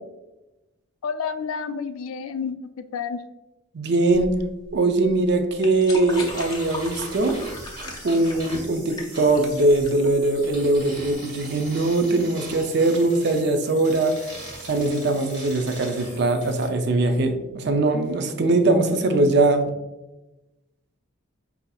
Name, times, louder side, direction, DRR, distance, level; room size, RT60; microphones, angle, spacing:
voice 1, 1.0-3.2, left 6 dB, 90° left, 11 dB, 0.3 m, -30 dB
voice 2, 3.7-4.3 4.7-7.4 8.0-14.1 14.6-19.7, right 2 dB, 55° right, 6 dB, 0.4 m, -21 dB
sound 1, 4.1-11.1, left 2 dB, 20° left, 0.5 m, -38 dB
sound 2, 6.1-16.7, right 2 dB, 25° right, 1.4 m, -40 dB
5.5 x 2.6 x 2.3 m, 0.99 s
head